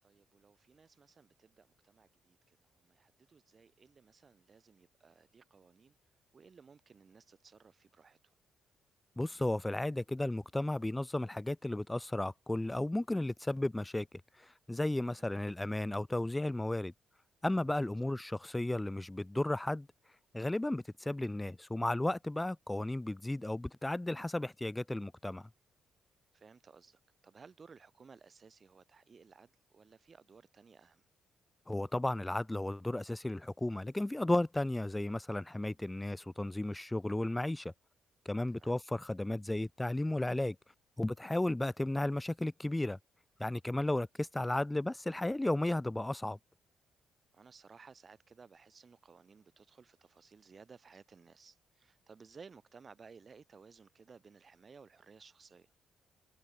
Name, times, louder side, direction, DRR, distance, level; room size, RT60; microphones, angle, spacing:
voice 1, 0.0-6.0 6.3-8.3 15.0-15.3 18.0-18.1 26.3-31.1 38.5-38.7 43.7-43.9 47.3-55.7, right 5 dB, 40° right, 5.5 m, -58 dB
voice 2, 9.2-14.1 14.7-16.9 17.4-19.9 20.3-25.4 31.7-37.7 38.3-40.6 41.0-43.0 43.4-46.4, left 1 dB, 10° left, 0.3 m, -34 dB
cardioid pair, 90°, 0 cm